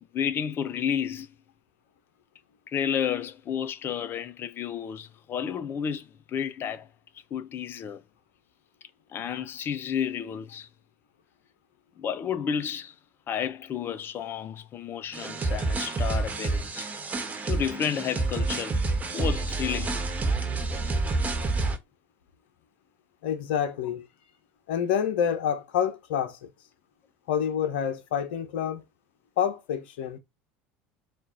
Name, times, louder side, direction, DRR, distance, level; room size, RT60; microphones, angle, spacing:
voice 1, 0.1-1.3 2.7-6.9 7.3-8.0 9.1-10.7 12.0-12.9 13.3-16.9 17.5-18.8 19.1-20.0, left 8 dB, 40° left, 0.7 m, -31 dB
sound 1, 15.1-21.8, right 3 dB, 25° right, 1.2 m, -28 dB
voice 2, 23.2-24.1 24.7-26.4 27.3-28.8 29.4-30.2, left 8 dB, 75° left, 0.9 m, -27 dB
4.3 x 2.5 x 3.7 m
hypercardioid pair, 80°, 6 cm